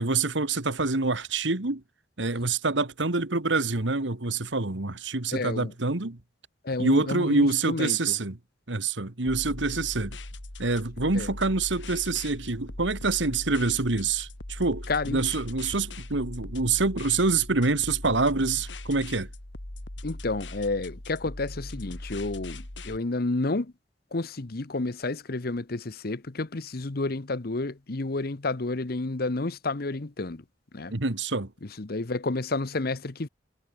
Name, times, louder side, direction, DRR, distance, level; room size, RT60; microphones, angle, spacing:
voice 1, 0.0-1.8 2.2-6.2 6.8-8.4 8.7-10.2 10.6-19.3 30.9-31.5, right 3 dB, 90° right, 1.9 m, -26 dB
voice 2, 5.3-5.7 6.6-8.2 11.1-11.3 14.9-15.2 20.0-23.7 24.1-30.4 30.7-30.9 31.6-33.3, left 2 dB, 55° left, 1.0 m, -30 dB
sound 1, 9.3-23.0, left 1 dB, 85° left, 2.7 m, -40 dB
head